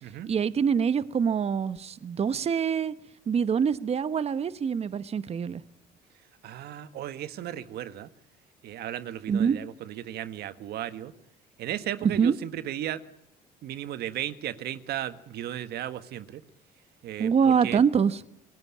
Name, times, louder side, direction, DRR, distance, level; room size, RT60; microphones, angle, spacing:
voice 1, 0.3-2.9 3.3-5.6 9.3-9.6 12.0-12.3 17.2-18.2, right 7 dB, 40° right, 14 dB, 1.1 m, -25 dB
voice 2, 6.4-8.1 8.6-11.1 11.6-13.0 13.6-16.4 17.0-17.8, right 12 dB, 70° right, 12 dB, 1.6 m, -35 dB
28.0 x 20.0 x 8.6 m, 0.74 s
cardioid pair, 110°, 17 cm